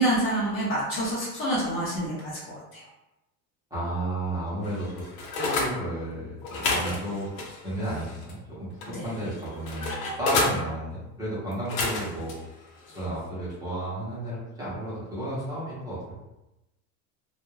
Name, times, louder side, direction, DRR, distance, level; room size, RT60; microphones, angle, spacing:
voice 1, 0.0-2.8 6.8-6.9 8.9-9.0, right 1 dB, 30° left, -6 dB, 0.7 m, -27 dB
voice 2, 3.7-7.3 7.6-12.3 12.9-16.1, right 1 dB, 10° right, -10 dB, 0.7 m, -33 dB
sound 1, 4.6-5.7 6.4-8.4 8.8-10.6 11.5-12.3 12.8-13.1, left 3 dB, 85° left, 0.8 m, -30 dB
2.3 x 2.1 x 3.0 m, 0.97 s
cardioid pair, 165°, 41 cm